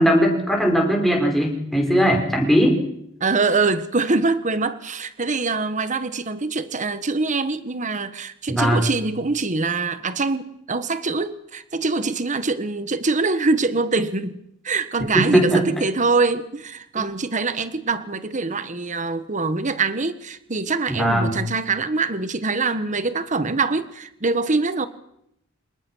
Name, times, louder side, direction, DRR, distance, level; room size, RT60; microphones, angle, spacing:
voice 1, 0.0-2.8 8.5-8.9 15.1-15.6 20.9-21.3, equal, ahead, 0 dB, 5.4 m, -19 dB
voice 2, 3.2-14.4 14.6-24.9, right 3 dB, 40° right, 12 dB, 1.3 m, -24 dB
27.5 x 19.5 x 6.3 m, 0.76 s
head